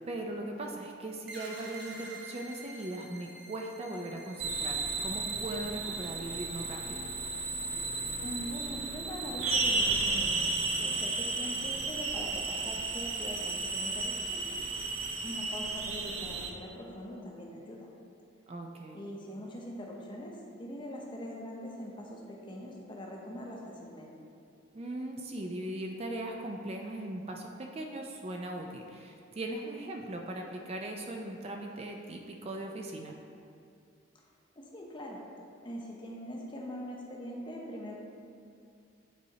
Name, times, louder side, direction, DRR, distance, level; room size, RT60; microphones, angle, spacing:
voice 1, 0.1-7.0 18.5-19.0 24.7-33.1, right 1 dB, 30° right, 2 dB, 0.4 m, -39 dB
sound 1, 1.3-8.5, right 2 dB, 55° right, 1.0 m, -50 dB
sound 2, 4.4-16.5, right 3 dB, 80° right, 0.6 m, -33 dB
voice 2, 8.2-10.4 10.8-14.4 15.2-17.9 18.9-24.2 34.6-35.2 35.6-37.9, equal, 25° left, -1 dB, 0.7 m, -42 dB
9.1 x 4.2 x 2.8 m, 2.4 s
head